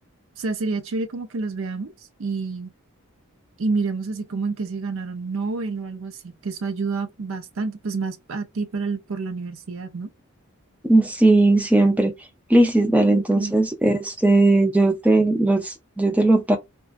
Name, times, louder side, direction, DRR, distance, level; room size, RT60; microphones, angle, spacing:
voice 1, 0.4-1.9 2.2-2.7 3.6-10.1 13.0-13.6, right 4 dB, 65° right, 0.5 m, -28 dB
voice 2, 10.8-12.1 12.5-16.6, right 2 dB, 5° right, 0.4 m, -18 dB
2.4 x 2.2 x 2.4 m
head